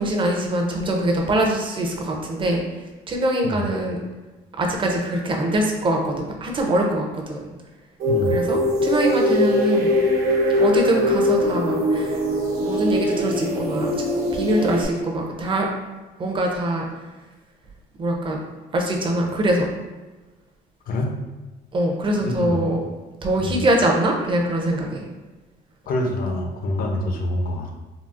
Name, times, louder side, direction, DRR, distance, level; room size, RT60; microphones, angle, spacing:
voice 1, 0.0-2.6 3.1-4.0 4.6-7.5 8.3-9.9 10.5-12.2 12.6-13.9 14.3-15.7 16.2-16.9 18.0-18.4 18.7-19.7 21.7-22.8 23.2-25.1, right 1 dB, 30° right, 1 dB, 0.5 m, -23 dB
voice 2, 8.0-8.4 20.9-21.1 22.2-22.7 23.4-23.6 25.9-27.7, left 1 dB, 60° left, 2 dB, 0.6 m, -26 dB
sound 1, 8.0-14.8, left 1 dB, 65° right, 0.7 m, -21 dB
3.8 x 2.0 x 2.4 m, 1.2 s
cardioid pair, 110°, 17 cm